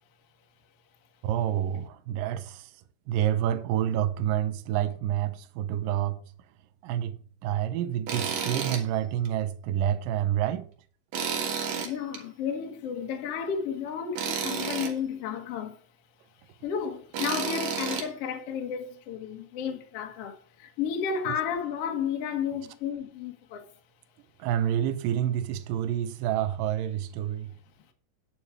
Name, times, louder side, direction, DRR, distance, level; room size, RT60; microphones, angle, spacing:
voice 1, 1.2-2.7 3.1-6.2 6.8-10.7 24.4-27.5, right 11 dB, 75° right, 2.0 m, -28 dB
Tools, 8.1-8.8 9.2-9.3 11.1-12.2 14.2-14.9 17.1-18.1, right 6 dB, 60° right, 2.8 m, -31 dB
voice 2, 11.8-15.8 16.6-23.6, left 7 dB, 75° left, 1.4 m, -32 dB
9.9 x 7.0 x 4.8 m
omnidirectional pair, 5.0 m